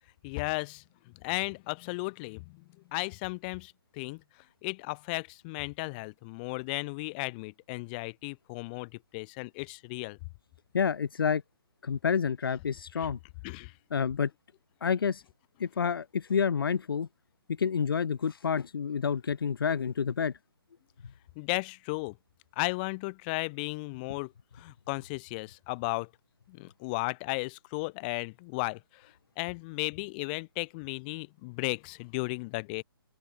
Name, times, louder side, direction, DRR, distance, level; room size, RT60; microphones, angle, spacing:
voice 1, 0.2-4.2 4.6-10.2 13.0-13.1 13.4-13.7 21.4-22.2 22.6-26.1 26.5-32.8, left 28 dB, 25° left, 5.5 m, -35 dB
voice 2, 10.7-11.4 11.8-13.2 13.9-14.3 14.8-15.2 15.6-17.1 17.6-20.3, left 6 dB, 65° left, 1.1 m, -28 dB
open air
hypercardioid pair, 160°, 13 cm